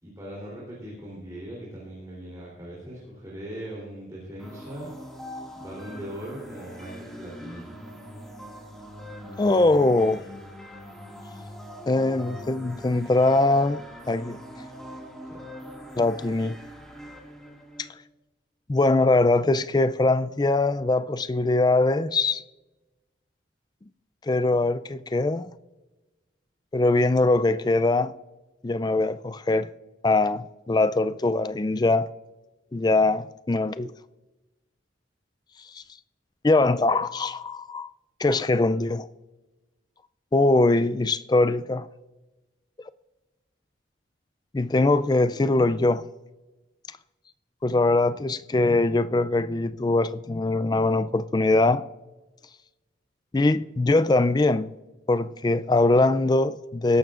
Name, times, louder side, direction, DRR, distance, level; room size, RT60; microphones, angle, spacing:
voice 1, 0.0-4.9 5.5-7.6 15.3-15.4 48.1-48.2, right 1 dB, 20° right, 3.3 m, -39 dB
sound 1, 4.4-17.9, equal, ahead, 2.0 m, -42 dB
voice 2, 9.4-10.2 11.9-13.8 14.1-14.4 16.0-16.6 17.8-17.9 18.7-22.4 24.2-25.5 26.7-28.1 28.6-29.7 30.0-32.1 32.7-33.9 35.7-35.8 36.4-37.9 38.2-39.1 40.3-41.9 44.5-46.1 47.6-51.8 53.3-54.7 55.1-57.0, left 2 dB, 20° left, 0.3 m, -22 dB
20.5 x 12.0 x 2.5 m
head